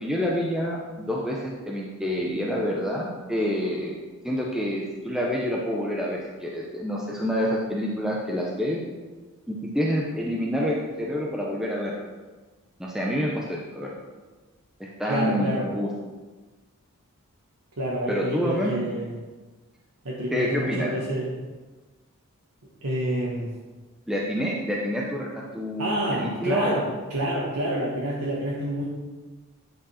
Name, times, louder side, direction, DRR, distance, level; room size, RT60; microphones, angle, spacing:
voice 1, 0.0-4.0 4.2-8.8 9.5-11.9 12.8-13.9 14.8-15.9 18.1-18.8 20.3-20.9 24.1-25.3 25.5-26.8, equal, ahead, -3 dB, 0.8 m, -27 dB
voice 2, 15.1-15.7 17.8-19.1 20.0-21.4 22.8-23.5 25.8-26.8 27.1-28.8, right 1 dB, 90° right, -5 dB, 1.3 m, -28 dB
10.0 x 5.0 x 4.3 m, 1.3 s
head